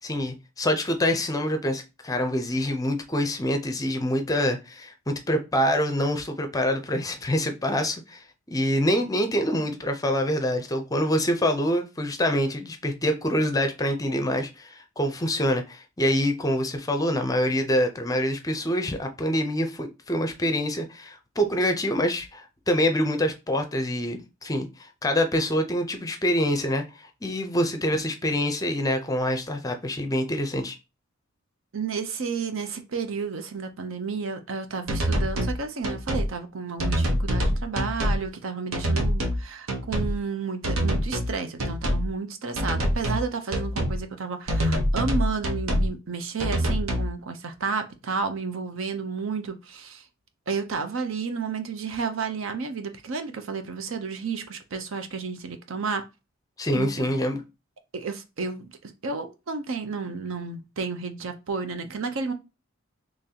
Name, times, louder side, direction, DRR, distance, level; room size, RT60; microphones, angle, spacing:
voice 1, 0.0-24.7 25.0-30.8 56.6-57.4, equal, 15° left, 0.5 m, -26 dB
voice 2, 31.7-50.0 50.5-56.0 56.7-57.1 57.9-58.7 59.0-62.3, right 5 dB, 70° right, 0.6 m, -31 dB
sound 1, 34.9-35.6 35.8-36.3 36.8-38.2 38.7-39.4 39.7-40.1 40.6-41.3 41.6-42.1 42.6-43.2 43.5-44.0 44.5-45.9 46.4-47.1, equal, 85° right, 1.0 m, -25 dB
3.9 x 3.0 x 2.8 m
head